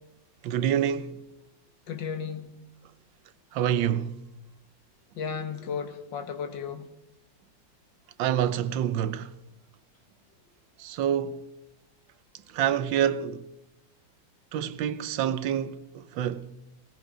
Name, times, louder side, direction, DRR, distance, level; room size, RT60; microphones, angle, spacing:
voice 1, 0.4-1.1 3.5-4.2 8.2-9.3 10.8-11.4 12.5-13.5 14.5-16.5, right 10 dB, 85° right, 1.4 m, -27 dB
voice 2, 1.9-2.5 5.2-6.9, left 6 dB, 75° left, 1.9 m, -34 dB
19.0 x 18.5 x 3.8 m
omnidirectional pair, 2.0 m